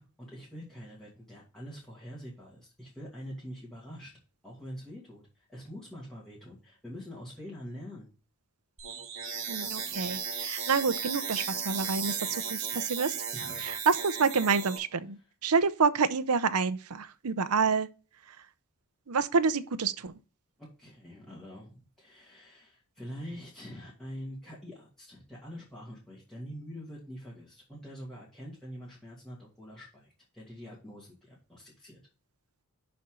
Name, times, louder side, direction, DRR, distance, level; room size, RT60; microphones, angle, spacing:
voice 1, 0.0-4.1 4.4-8.1 13.3-13.8 15.2-15.3 20.6-32.0, equal, ahead, 2.5 m, -45 dB
sound 1, 8.8-14.8, right 6 dB, 60° right, 2.5 m, -35 dB
voice 2, 9.5-13.2 13.6-17.9 19.1-20.1, right 5 dB, 85° right, 0.7 m, -28 dB
11.0 x 4.4 x 3.8 m
head